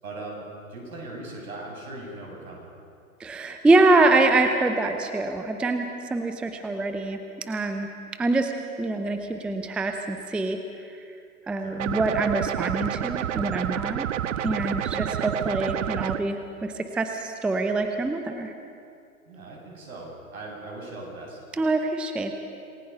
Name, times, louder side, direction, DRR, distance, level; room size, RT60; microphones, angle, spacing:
voice 1, 0.0-2.7 11.6-11.8 14.8-15.0 19.3-21.4, right 2 dB, 70° right, -1 dB, 7.6 m, -39 dB
voice 2, 3.2-7.2 7.5-7.9 8.2-8.5 8.8-10.6 11.0-11.1 11.5-14.1 14.4-18.5 21.5-22.4, right 2 dB, ahead, 6 dB, 0.5 m, -24 dB
sound 1, 11.8-16.2, right 10 dB, 55° right, 1.0 m, -29 dB
27.0 x 19.5 x 5.5 m, 2.5 s
hypercardioid pair, 115°, 43 cm